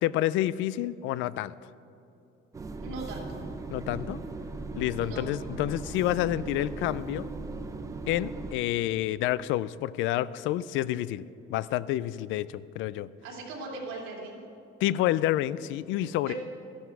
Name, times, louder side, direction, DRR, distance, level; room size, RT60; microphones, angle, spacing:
voice 1, 0.0-1.5 3.7-4.2 4.7-7.3 8.1-11.2 11.5-13.1 14.8-16.3, left 14 dB, 70° left, 18 dB, 0.4 m, -28 dB
sound 1, 2.5-8.5, right 3 dB, 15° right, 0.6 m, -38 dB
voice 2, 2.8-3.4 5.0-5.3 13.2-14.4 16.2-16.3, right 3 dB, 80° right, -2 dB, 2.8 m, -39 dB
13.5 x 11.5 x 4.7 m, 2.8 s
cardioid pair, 175°, 21 cm